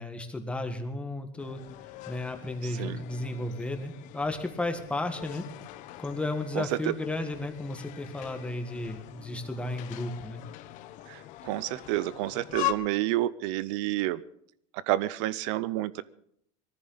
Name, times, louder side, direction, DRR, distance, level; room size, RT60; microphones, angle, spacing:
voice 1, 0.0-1.6 2.1-5.5 6.0-10.4, left 2 dB, 5° left, 5 dB, 1.6 m, -33 dB
sound 1, 1.4-12.7, left 16 dB, 50° left, 1.0 m, -41 dB
voice 2, 2.6-3.0 6.5-6.9 11.1-14.2 14.7-16.0, right 16 dB, 70° right, 18 dB, 0.6 m, -30 dB
20.5 x 14.5 x 4.0 m, 0.70 s
supercardioid pair, 145°, 16 cm